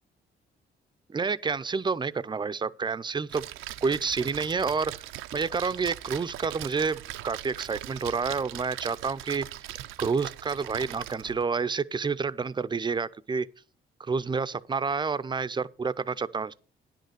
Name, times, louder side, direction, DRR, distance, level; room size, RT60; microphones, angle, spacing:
voice 1, 1.1-3.4 3.8-4.9 5.3-9.5 10.0-13.5 14.0-16.6, right 5 dB, 25° right, 0.5 m, -29 dB
Splash splatter, 3.3-11.4, right 14 dB, 90° right, 0.6 m, -40 dB
9.9 x 6.5 x 6.6 m
cardioid pair, 90°, 20 cm